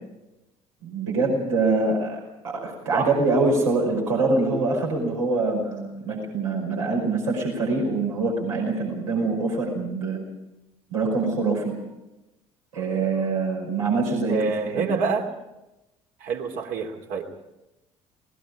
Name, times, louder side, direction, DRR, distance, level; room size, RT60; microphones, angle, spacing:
voice 1, 0.8-10.2 10.9-11.7 12.7-14.4 14.7-15.0, right 3 dB, 75° right, -1 dB, 5.3 m, -24 dB
voice 2, 14.3-15.3 16.2-17.3, right 5 dB, 55° right, 2 dB, 3.0 m, -27 dB
27.5 x 19.5 x 4.9 m, 0.95 s
figure-of-eight pair, 55°, 17 cm